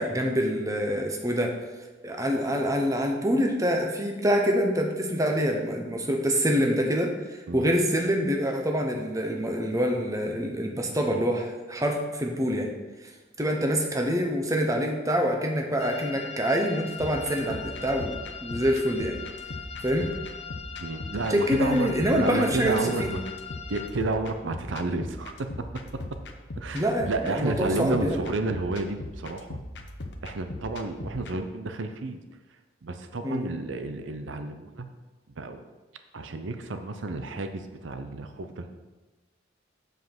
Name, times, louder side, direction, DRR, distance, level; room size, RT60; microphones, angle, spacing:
voice 1, 0.0-1.5 2.0-12.7 13.0-13.1 13.4-19.2 19.8-20.1 21.3-23.1 26.7-28.2 33.2-33.5, equal, 15° right, 2 dB, 1.0 m, -26 dB
sound 1, 15.8-23.9, left 7 dB, 35° left, 0.7 m, -41 dB
sound 2, 17.0-31.3, left 1 dB, 65° left, 0.8 m, -40 dB
voice 2, 20.7-23.2 23.7-25.7 26.6-29.6 30.2-32.2 32.8-34.9 35.4-35.6 36.1-38.7, right 2 dB, 85° right, 8 dB, 0.7 m, -31 dB
7.6 x 5.4 x 6.0 m, 1.2 s
head